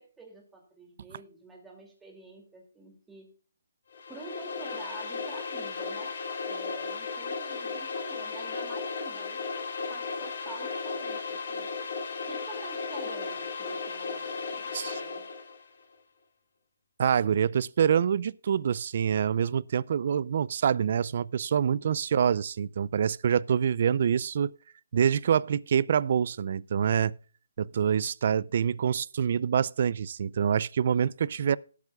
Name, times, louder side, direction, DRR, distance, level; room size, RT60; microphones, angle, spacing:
voice 1, 0.0-3.3 4.1-6.2 6.5-11.7 12.3-15.2, right 2 dB, 5° right, 2.4 m, -48 dB
sound 1, 3.9-15.6, left 4 dB, 50° left, 2.5 m, -35 dB
voice 2, 17.0-24.5 24.9-27.1 27.6-31.6, right 8 dB, 45° right, 0.4 m, -26 dB
18.0 x 8.4 x 2.3 m
hypercardioid pair, 165°, 0 cm